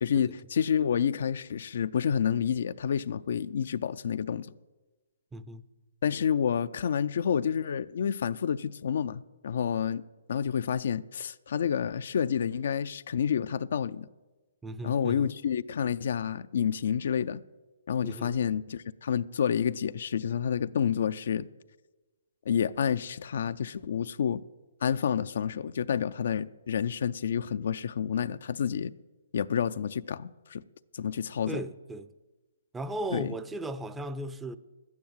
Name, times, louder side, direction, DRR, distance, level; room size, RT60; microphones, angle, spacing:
voice 1, 0.0-4.5 6.0-10.0 10.3-14.1 14.8-17.4 17.9-21.5 22.5-24.4 24.8-28.9 29.3-30.6 30.9-31.6 33.1-33.3, left 8 dB, 65° left, 0.4 m, -29 dB
voice 2, 5.3-5.6 14.6-15.3 18.0-18.3 31.5-32.1 32.7-34.6, right 1 dB, 10° right, 0.5 m, -36 dB
12.0 x 9.6 x 7.4 m
hypercardioid pair, 135°, 0 cm